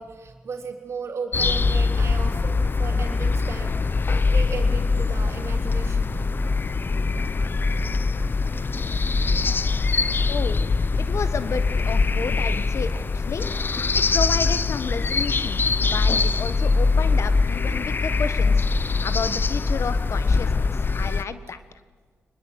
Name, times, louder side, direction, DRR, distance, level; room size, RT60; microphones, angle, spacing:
voice 1, 0.0-3.7 4.0-6.2, right 5 dB, 60° right, 4 dB, 3.7 m, -35 dB
sound 1, 1.3-21.2, left 4 dB, 40° left, 0.8 m, -22 dB
voice 2, 10.3-10.6 11.1-13.5 13.9-21.6, left 5 dB, 65° left, 12 dB, 1.4 m, -32 dB
24.5 x 21.0 x 8.1 m, 1.5 s
supercardioid pair, 50°, 5 cm